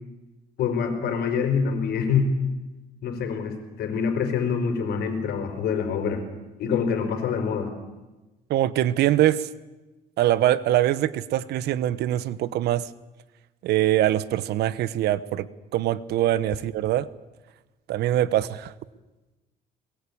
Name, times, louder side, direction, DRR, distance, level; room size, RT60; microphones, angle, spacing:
voice 1, 0.6-2.3 3.0-6.2 6.6-7.7, left 6 dB, 70° left, 7 dB, 4.9 m, -25 dB
voice 2, 8.5-9.5 10.2-12.9 13.6-15.5 15.7-17.1 17.9-18.7, right 13 dB, 75° right, 17 dB, 1.1 m, -23 dB
22.0 x 21.0 x 8.7 m, 1.1 s
cardioid pair, 110°, 17 cm